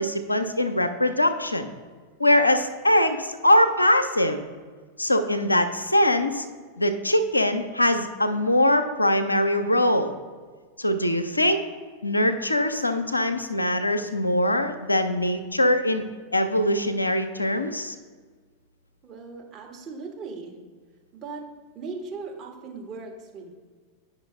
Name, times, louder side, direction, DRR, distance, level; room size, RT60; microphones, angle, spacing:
voice 1, 0.0-1.7 2.2-4.4 5.0-6.4 6.8-10.1 10.8-11.6 12.0-16.0 16.3-18.0, left 1 dB, 85° left, 8 dB, 0.5 m, -22 dB
voice 2, 19.0-20.6 21.1-21.5 21.7-23.5, right 4 dB, 30° right, 0 dB, 1.3 m, -38 dB
9.6 x 5.4 x 3.1 m, 1.5 s
figure-of-eight pair, 90°, 0 cm